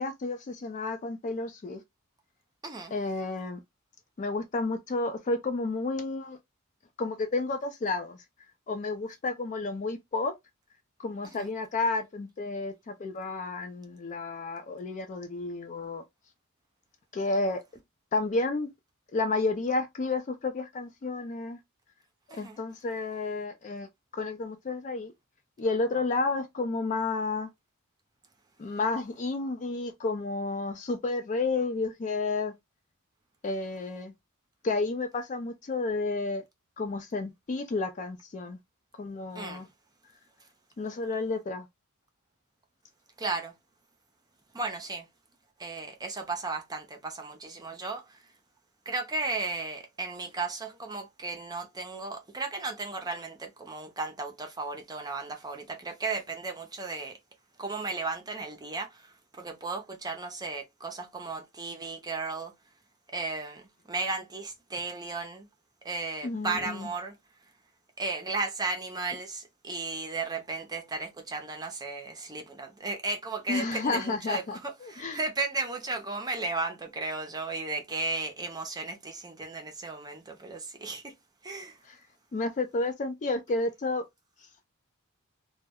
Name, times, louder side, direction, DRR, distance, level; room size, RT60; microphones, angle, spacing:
voice 1, 0.0-1.8 2.9-3.6 4.2-6.4 7.0-8.2 8.7-10.3 11.0-16.0 17.1-17.6 18.1-18.7 19.1-21.6 22.3-23.9 24.1-25.1 25.6-27.5 28.6-32.5 33.4-34.1 34.6-36.4 36.8-38.6 39.0-39.7 40.8-41.7 66.2-66.9 73.5-75.2 81.9-82.0 82.3-84.0, left 3 dB, 35° left, 0.3 m, -31 dB
voice 2, 2.6-2.9 11.2-11.5 22.3-22.6 39.3-39.7 43.2-43.5 44.5-45.1 45.6-48.2 48.9-57.2 57.6-62.5 63.1-65.5 65.8-67.2 68.0-81.1 81.4-81.8, right 3 dB, 20° right, 0.5 m, -35 dB
2.2 x 2.1 x 3.4 m
head